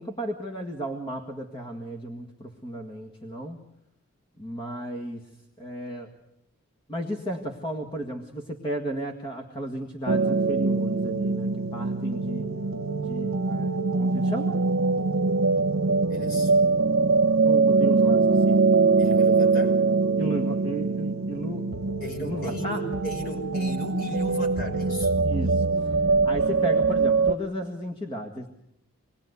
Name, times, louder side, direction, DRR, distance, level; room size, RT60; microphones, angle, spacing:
voice 1, 0.0-3.6 4.4-6.1 6.9-12.5 13.0-14.5 17.4-18.7 20.2-21.7 22.2-22.9 25.2-28.5, right 1 dB, 25° left, 2 dB, 1.8 m, -34 dB
sound 1, 10.1-27.3, right 4 dB, 70° right, 1.0 m, -23 dB
voice 2, 16.1-16.5 19.0-19.8 22.0-25.1, left 1 dB, 45° left, 2 dB, 5.2 m, -35 dB
27.5 x 20.5 x 8.1 m, 0.82 s
head